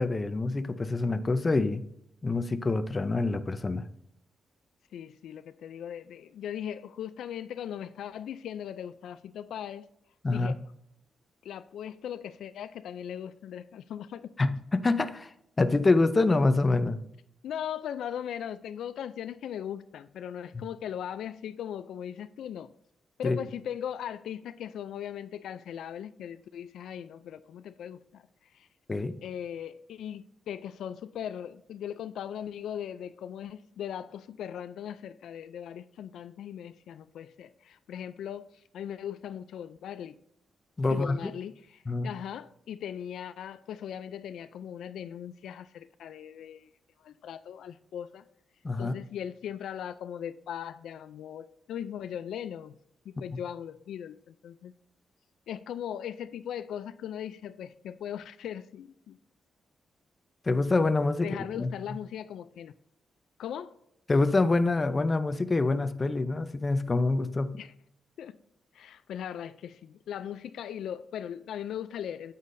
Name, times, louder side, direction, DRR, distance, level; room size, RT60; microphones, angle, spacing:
voice 1, 0.0-1.8 2.2-3.9 10.2-10.6 14.4-17.0 20.5-20.6 23.2-23.4 28.9-29.1 40.8-41.3 41.9-42.1 48.6-48.9 60.4-61.3 61.6-62.0 64.1-67.5, left 3 dB, 25° left, 0.5 m, -26 dB
voice 2, 4.9-9.9 10.3-10.6 11.4-14.3 17.4-22.7 23.2-28.2 28.5-28.7 29.2-38.5 38.7-40.2 40.9-46.7 47.0-48.2 48.8-52.8 53.1-54.7 55.5-59.2 61.2-62.7 63.4-63.7 67.6-67.7 68.2-68.4 68.7-72.3, left 9 dB, 85° left, 0.3 m, -39 dB
9.4 x 8.2 x 2.6 m
cardioid pair, 115°, 0 cm